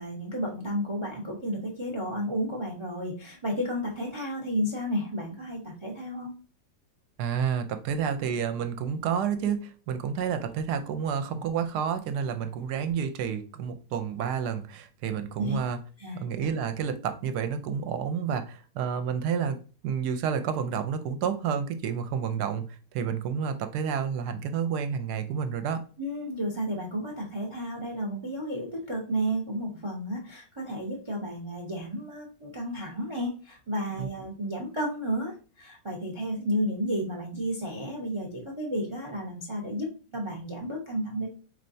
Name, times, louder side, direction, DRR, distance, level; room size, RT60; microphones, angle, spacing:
voice 1, 0.0-6.3 15.4-15.6 16.0-16.3 26.0-41.3, equal, 40° right, 0.4 m, -32 dB
voice 2, 7.2-15.8 16.1-19.6 19.8-25.8 34.0-34.1, right 7 dB, 70° right, 1.1 m, -30 dB
4.4 x 3.3 x 2.6 m
omnidirectional pair, 1.9 m